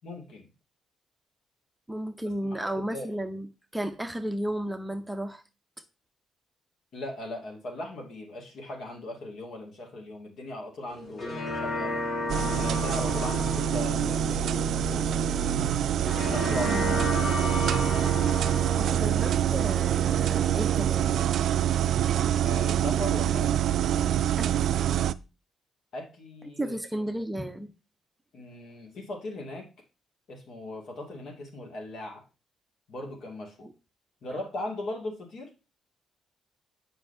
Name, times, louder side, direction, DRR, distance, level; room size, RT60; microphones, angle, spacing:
voice 1, 0.0-0.5 2.4-3.1 6.9-12.0 12.5-15.6 16.3-16.9 22.4-23.5 25.9-27.0 28.3-29.7 30.3-32.2 32.9-33.7 34.2-35.5, left 1 dB, 65° left, 2.3 m, -39 dB
voice 2, 1.9-3.5 3.7-5.4 16.6-17.1 18.8-21.2 24.4-24.5 26.6-27.7 33.6-33.7, right 1 dB, 10° right, 0.7 m, -33 dB
sound 1, 10.9-21.8, left 2 dB, 45° left, 1.9 m, -35 dB
sound 2, 12.3-25.1, right 10 dB, 70° right, 0.3 m, -25 dB
7.6 x 5.4 x 2.7 m
cardioid pair, 90°, 0 cm